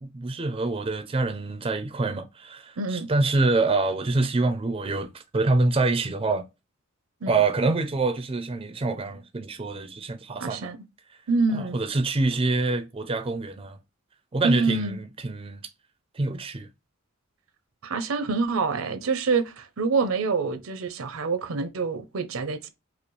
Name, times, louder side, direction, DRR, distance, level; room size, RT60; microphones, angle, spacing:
voice 1, 0.0-6.4 7.3-10.7 11.5-13.8 14.3-15.6 16.2-16.7, right 3 dB, 25° right, 0.4 m, -26 dB
voice 2, 2.8-3.1 7.2-7.3 10.4-10.8 11.3-11.8 14.4-15.0 17.8-22.7, right 4 dB, 75° right, 0.6 m, -26 dB
4.8 x 2.0 x 3.1 m
head